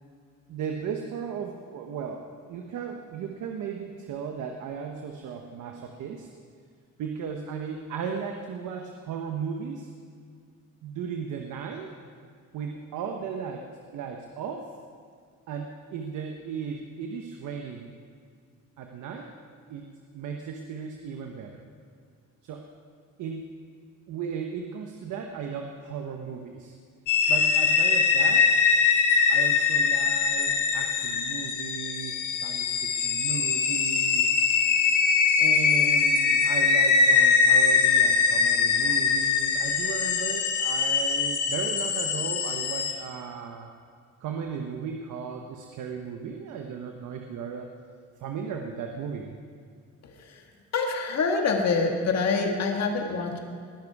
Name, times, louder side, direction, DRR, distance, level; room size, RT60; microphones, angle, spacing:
voice 1, 0.5-6.3 7.0-9.9 10.8-11.9 12.5-13.7 13.9-14.7 15.5-17.9 18.8-19.3 19.7-19.8 20.1-21.6 22.4-22.6 23.2-23.4 24.1-26.7 27.3-28.5 29.3-34.4 35.4-43.7 44.2-47.7 48.2-49.4, right 6 dB, 80° right, 3 dB, 1.2 m, -36 dB
sound 1, 27.1-42.9, left 5 dB, 75° left, 1.6 m, -22 dB
voice 2, 50.0-50.4 50.7-53.4, left 4 dB, 60° left, 2 dB, 2.1 m, -26 dB
20.0 x 10.5 x 4.9 m, 2.1 s
cardioid pair, 90°, 30 cm